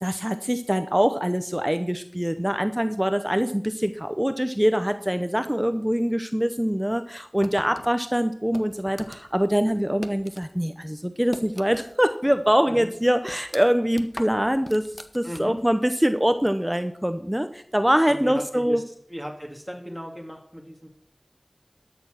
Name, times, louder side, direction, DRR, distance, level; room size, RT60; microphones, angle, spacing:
voice 1, 0.0-14.9 15.1-18.8, equal, 10° right, 9 dB, 0.7 m, -24 dB
sound 1, 7.4-10.5 10.8-12.0 12.3-12.4 12.9-15.7, left 1 dB, 40° left, 1.0 m, -41 dB
voice 2, 15.2-15.6 18.1-18.8 19.1-20.9, equal, 5° left, 0 dB, 2.1 m, -36 dB
12.5 x 6.9 x 6.1 m, 0.65 s
wide cardioid pair, 45°, 0 cm